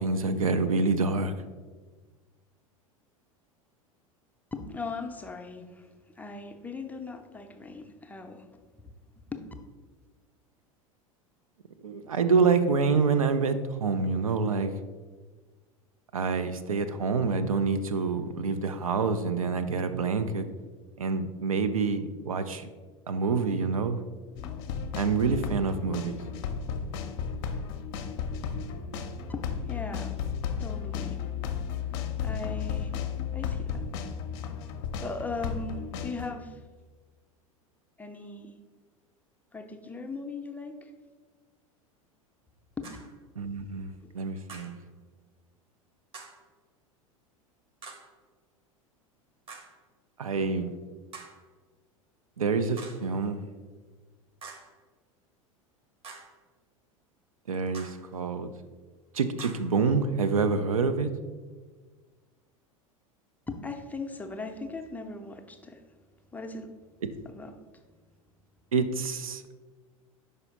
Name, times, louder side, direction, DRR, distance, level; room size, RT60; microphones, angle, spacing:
voice 1, 0.0-1.3 11.8-14.7 16.1-20.5 21.0-22.7 23.1-24.0 25.0-26.2 43.4-43.9 44.1-44.7 50.2-50.7 52.4-53.4 57.5-58.5 59.1-61.1 68.7-69.6, right 4 dB, 75° right, 11 dB, 0.4 m, -27 dB
voice 2, 4.5-5.9 6.2-8.5 9.2-9.4 29.3-30.2 30.6-31.2 32.2-33.0 33.3-33.8 35.0-36.6 38.0-38.6 39.5-40.9 42.8-42.9 44.0-44.2 63.5-65.8 66.3-66.8 67.3-67.6, left 3 dB, 10° left, 4 dB, 0.5 m, -39 dB
sound 1, 24.4-36.3, left 7 dB, 50° left, 0.6 m, -34 dB
sound 2, 42.8-43.2 44.5-44.8 46.1-46.5 47.8-48.2 49.5-49.8 51.1-51.5 52.8-53.1 54.4-54.8 56.0-56.4 57.7-58.1 59.4-59.8, right 4 dB, 30° right, 0.9 m, -46 dB
5.4 x 4.8 x 4.0 m, 1.4 s
figure-of-eight pair, 80°, 18 cm